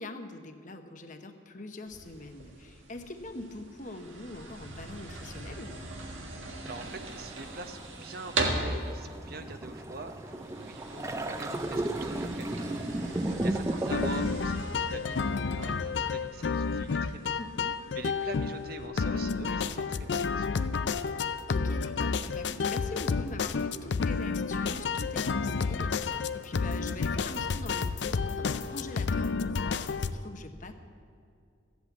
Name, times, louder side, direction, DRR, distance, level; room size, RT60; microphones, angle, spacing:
voice 1, 0.0-5.7 13.3-13.7 17.4-17.8 21.5-30.7, left 2 dB, 40° left, 6 dB, 0.9 m, -43 dB
sound 1, 1.8-18.9, right 2 dB, 90° right, 1.7 m, -40 dB
voice 2, 6.6-12.7 13.4-17.4 17.9-20.6, right 3 dB, 50° right, 8 dB, 0.8 m, -44 dB
sound 2, 6.7-14.3, right 1 dB, 15° right, 0.5 m, -35 dB
sound 3, 13.9-30.1, left 5 dB, 65° left, 0.5 m, -30 dB
14.5 x 8.1 x 8.3 m, 2.4 s
head